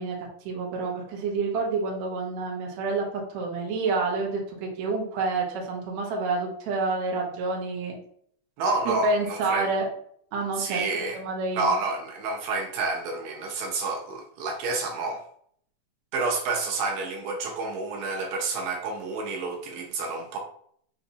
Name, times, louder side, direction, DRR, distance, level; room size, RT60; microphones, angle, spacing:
voice 1, 0.0-3.1 3.3-8.0 8.9-9.9 10.3-10.8 11.1-11.7, right 3 dB, 70° right, 0 dB, 2.0 m, -28 dB
voice 2, 8.6-9.7 10.6-11.2 11.5-15.2 16.1-20.4, right 3 dB, 85° right, 1 dB, 2.4 m, -29 dB
5.6 x 2.8 x 2.7 m, 0.62 s
omnidirectional pair, 3.9 m